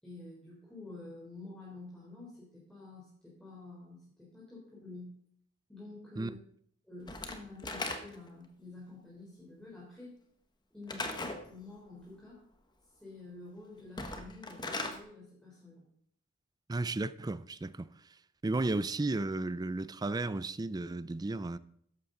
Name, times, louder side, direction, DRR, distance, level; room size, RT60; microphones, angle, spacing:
voice 1, 0.0-5.1 5.7-6.4 6.8-10.2 10.7-12.4 13.0-15.8, left 2 dB, 5° left, 3.5 m, -49 dB
Slam / Wood, 7.1-8.4 10.9-11.5 13.8-15.0, left 2 dB, 20° left, 1.1 m, -38 dB
voice 2, 16.7-17.9 18.4-21.6, right 2 dB, 20° right, 0.4 m, -34 dB
13.5 x 11.0 x 3.8 m
head